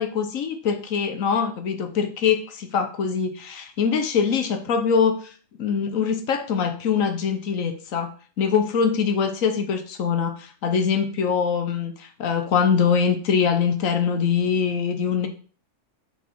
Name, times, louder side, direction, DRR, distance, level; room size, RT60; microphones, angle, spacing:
voice 1, 0.0-8.1 8.4-15.3, left 6 dB, 80° left, 7 dB, 1.3 m, -23 dB
6.2 x 4.2 x 4.6 m, 0.41 s
omnidirectional pair, 1.4 m